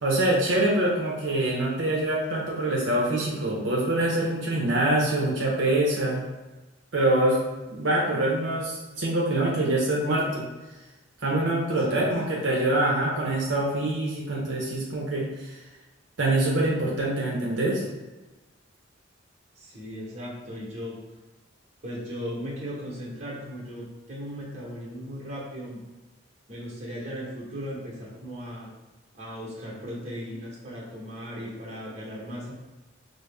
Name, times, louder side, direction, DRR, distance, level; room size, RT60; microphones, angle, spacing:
voice 1, 0.0-6.2 6.9-7.4 7.7-10.5 11.2-15.5 16.2-17.8, right 1 dB, 70° right, -4 dB, 0.7 m, -25 dB
voice 2, 19.6-21.0 21.8-25.8 26.5-28.7 29.1-32.5, equal, 35° right, -4 dB, 1.0 m, -37 dB
5.1 x 2.0 x 3.4 m, 1.1 s
head